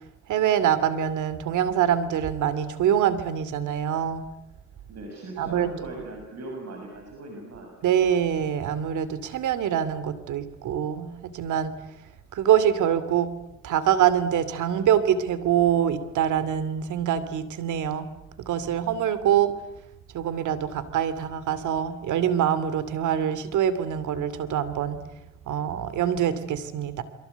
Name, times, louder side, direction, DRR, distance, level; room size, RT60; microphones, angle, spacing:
voice 1, 0.3-4.2 5.4-5.7 7.8-11.7 12.3-13.3 13.6-18.1 18.4-19.5 20.1-25.0 25.5-27.0, right 9 dB, 80° right, 14 dB, 2.6 m, -24 dB
voice 2, 4.9-8.1, right 2 dB, 60° right, 2 dB, 6.4 m, -39 dB
29.0 x 23.0 x 8.2 m, 0.86 s
cardioid pair, 90°, 30 cm